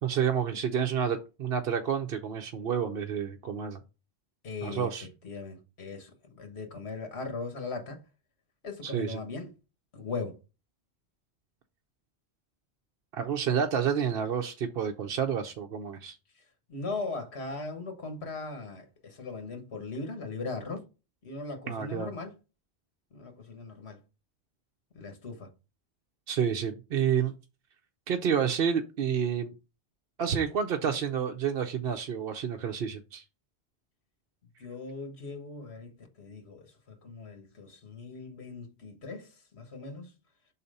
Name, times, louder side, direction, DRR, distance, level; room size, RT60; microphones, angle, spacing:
voice 1, 0.0-3.8 4.6-5.1 8.8-9.2 13.1-16.2 21.7-22.1 26.3-27.3 28.1-29.5 30.2-33.2, right 7 dB, 65° right, 0.9 m, -29 dB
voice 2, 4.4-4.9 5.2-8.0 8.6-9.5 9.9-10.4 16.7-20.8 21.2-22.3 23.1-24.0 24.9-25.5 34.6-39.3 39.5-40.1, left 3 dB, 75° left, 1.6 m, -39 dB
5.7 x 4.2 x 5.4 m
omnidirectional pair, 1.1 m